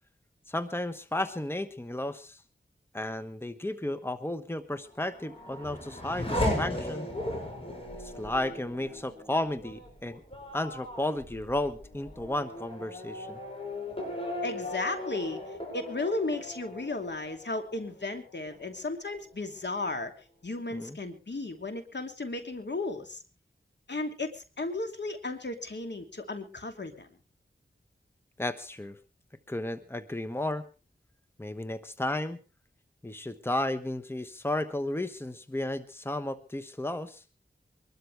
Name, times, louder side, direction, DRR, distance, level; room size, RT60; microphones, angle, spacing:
voice 1, 0.5-2.4 2.9-7.1 8.0-10.2 10.5-13.4 20.7-21.0 28.4-29.0 29.5-30.7 31.4-32.4 33.0-37.2, left 1 dB, 10° left, 11 dB, 1.2 m, -33 dB
Race car auto racing / Accelerating revving vroom, 4.9-18.1 18.5-19.2, left 1 dB, 30° left, 8.0 m, -37 dB
voice 2, 14.4-15.4 15.7-20.1 20.4-23.2 23.9-27.1, left 2 dB, 65° left, 6 dB, 2.8 m, -34 dB
24.0 x 12.5 x 3.4 m, 0.32 s
cardioid pair, 45°, 20 cm